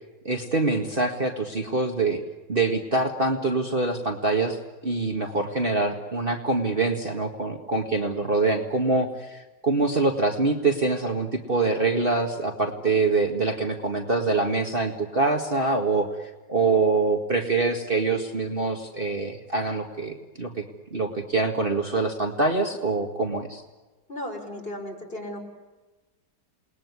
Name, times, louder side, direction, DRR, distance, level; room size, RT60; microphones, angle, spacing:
voice 1, 0.3-2.2 2.5-4.6 4.8-20.5 20.9-23.6, right 3 dB, 30° right, 2 dB, 2.0 m, -25 dB
voice 2, 24.1-25.4, left 1 dB, 30° left, 2 dB, 5.6 m, -35 dB
28.5 x 21.0 x 9.6 m, 1.2 s
omnidirectional pair, 1.9 m